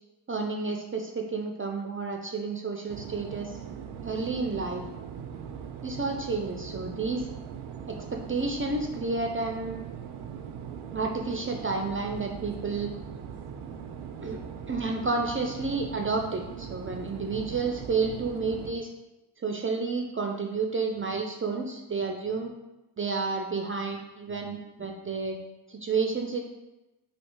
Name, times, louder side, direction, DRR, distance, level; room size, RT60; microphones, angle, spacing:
voice 1, 0.3-3.6 4.0-4.8 5.8-7.3 7.9-9.8 10.9-12.9 14.2-14.4 14.7-18.9 19.4-22.5 23.0-25.4 25.7-26.4, right 4 dB, 25° right, 2 dB, 0.5 m, -30 dB
sound 1, 2.9-18.7, right 7 dB, 80° right, 0.5 m, -40 dB
3.2 x 2.8 x 4.4 m, 1.0 s
supercardioid pair, 50°, 48 cm